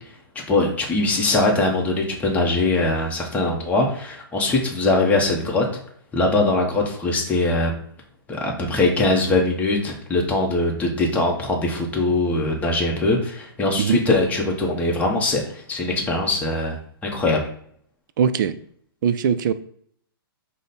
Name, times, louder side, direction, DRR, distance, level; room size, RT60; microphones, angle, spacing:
voice 1, 0.5-5.8 6.1-7.7 8.3-16.8 17.0-17.4, left 2 dB, 10° left, -1 dB, 0.8 m, -21 dB
voice 2, 18.2-18.6 19.0-19.5, right 7 dB, 55° right, 13 dB, 0.4 m, -20 dB
5.0 x 2.1 x 4.1 m, 0.62 s
hypercardioid pair, 130°, 12 cm